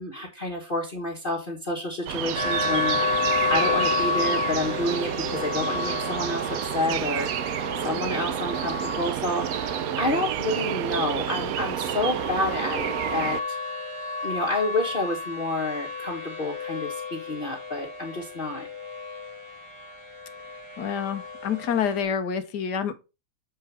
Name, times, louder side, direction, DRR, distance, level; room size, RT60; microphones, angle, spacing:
voice 1, 0.0-13.6 14.2-18.7, left 2 dB, 35° left, 1.4 m, -29 dB
sound 1, 2.1-13.4, right 11 dB, 70° right, 0.9 m, -30 dB
sound 2, 2.3-22.0, left 3 dB, 20° right, 1.6 m, -32 dB
voice 2, 20.8-22.9, left 7 dB, 85° left, 1.5 m, -27 dB
7.6 x 4.5 x 4.5 m
omnidirectional pair, 1.8 m